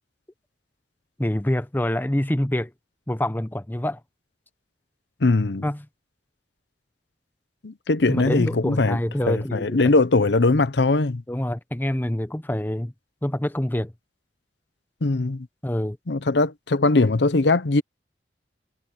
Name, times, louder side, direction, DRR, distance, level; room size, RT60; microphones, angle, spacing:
voice 1, 1.2-2.7 3.1-4.0 5.6-5.8 8.1-9.8 11.3-12.9 13.2-13.9 15.6-16.0, left 1 dB, 10° left, 0.7 m, -26 dB
voice 2, 5.2-5.7 7.6-11.2 15.0-15.5 16.1-17.8, left 3 dB, 75° left, 0.8 m, -21 dB
head